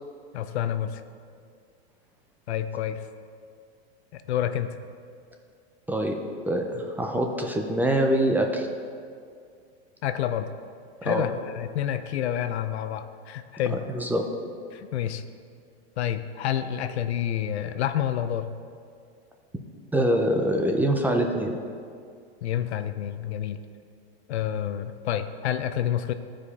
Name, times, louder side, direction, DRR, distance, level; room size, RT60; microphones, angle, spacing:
voice 1, 0.3-1.0 2.5-3.0 4.1-4.7 10.0-10.5 11.0-13.8 14.7-15.2 16.0-18.5 22.4-23.6 24.3-26.1, left 10 dB, 80° left, 10 dB, 0.7 m, -28 dB
voice 2, 6.5-8.7 11.0-11.2 13.7-14.2 19.9-21.5, right 1 dB, 5° right, 2 dB, 0.5 m, -24 dB
13.5 x 5.1 x 4.2 m, 2.2 s
hypercardioid pair, 130°, 33 cm